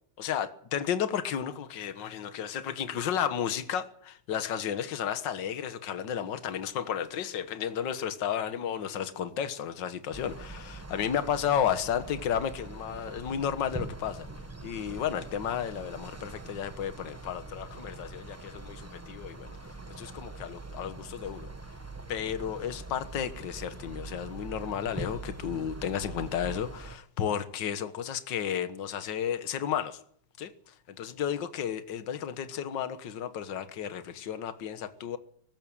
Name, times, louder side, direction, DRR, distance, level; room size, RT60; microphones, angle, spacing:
voice 1, 0.2-14.3 14.6-19.5 20.0-21.5 22.1-30.0 30.4-30.5 31.0-35.2, left 9 dB, 60° left, 1.9 m, -33 dB
sound 1, 10.1-27.0, right 2 dB, 10° right, 0.9 m, -43 dB
19.0 x 15.5 x 8.9 m
omnidirectional pair, 2.4 m